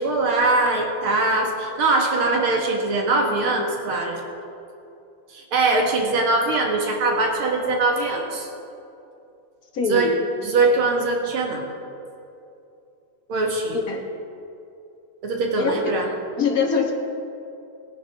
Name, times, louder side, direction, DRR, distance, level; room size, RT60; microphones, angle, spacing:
voice 1, 0.0-4.2 5.3-8.5 9.9-10.2 10.4-11.6 13.3-13.8 15.2-16.1, right 3 dB, 75° right, 1 dB, 2.5 m, -22 dB
voice 2, 9.7-10.1 13.7-14.1 15.6-15.9 16.4-16.9, left 5 dB, 45° left, 2 dB, 1.6 m, -23 dB
21.0 x 10.5 x 3.6 m, 2.7 s
omnidirectional pair, 2.4 m